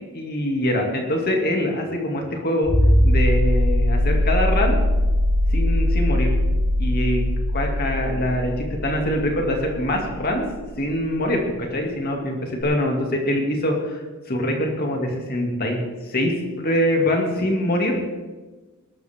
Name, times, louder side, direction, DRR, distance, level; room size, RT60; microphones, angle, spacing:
voice 1, 0.1-2.7 3.0-4.8 5.5-6.3 6.8-7.2 7.5-10.4 10.8-11.4 11.7-18.0, left 1 dB, 45° left, 1 dB, 2.7 m, -24 dB
sound 1, 2.7-11.1 12.6-12.7, left 1 dB, 15° right, 4.5 m, -20 dB
20.5 x 13.0 x 3.8 m, 1.2 s
head